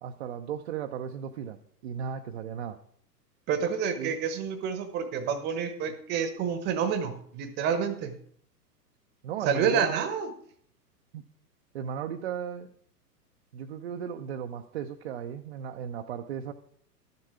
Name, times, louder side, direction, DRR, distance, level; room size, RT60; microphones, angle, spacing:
voice 1, 0.0-2.8 4.0-4.2 9.2-10.1 11.1-11.2 11.7-12.7 13.5-16.5, right 8 dB, 45° right, 5 dB, 0.6 m, -36 dB
voice 2, 3.5-8.2 9.4-10.3, right 7 dB, 20° right, 10 dB, 0.9 m, -28 dB
12.0 x 6.8 x 4.7 m, 0.64 s
figure-of-eight pair, 110°, 48 cm